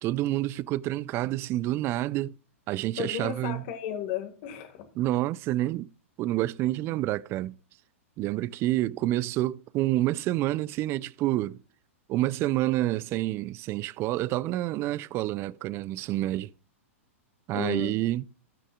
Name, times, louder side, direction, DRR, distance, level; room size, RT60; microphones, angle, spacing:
voice 1, 0.0-2.3 2.7-3.6 5.0-5.9 6.2-7.6 8.2-11.6 12.1-16.5 17.5-18.3, right 15 dB, 35° right, 0.4 m, -28 dB
voice 2, 3.0-4.9 17.5-18.0, left 10 dB, 50° left, 1.8 m, -34 dB
18.5 x 6.2 x 2.4 m
hypercardioid pair, 105°, 7 cm